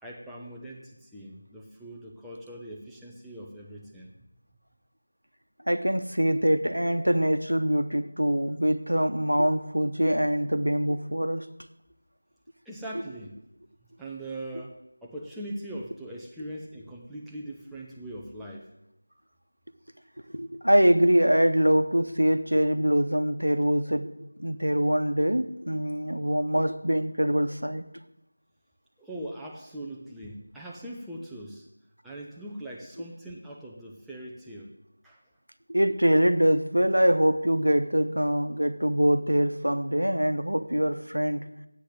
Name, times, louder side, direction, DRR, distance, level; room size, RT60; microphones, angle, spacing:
voice 1, 0.0-4.1 12.6-13.4 14.0-18.7 29.0-31.7 32.0-34.8 35.0-35.2, right 1 dB, ahead, -5 dB, 0.7 m, -41 dB
voice 2, 5.7-11.4 20.3-24.1 24.4-27.9 35.7-41.4, equal, 90° right, 10 dB, 0.9 m, -24 dB
9.7 x 8.2 x 7.8 m, 0.88 s
figure-of-eight pair, 170°, 0 cm